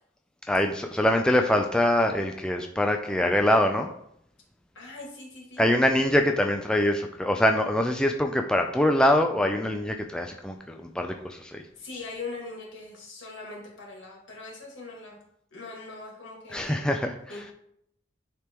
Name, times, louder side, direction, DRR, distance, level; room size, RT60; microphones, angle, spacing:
voice 1, 0.5-3.9 5.6-11.6 16.5-17.1, left 1 dB, 5° left, 3 dB, 0.3 m, -24 dB
voice 2, 4.7-5.7 11.8-15.2 15.5-16.9 17.3-17.5, left 3 dB, 75° left, -2 dB, 2.0 m, -41 dB
9.7 x 3.4 x 3.0 m, 0.72 s
head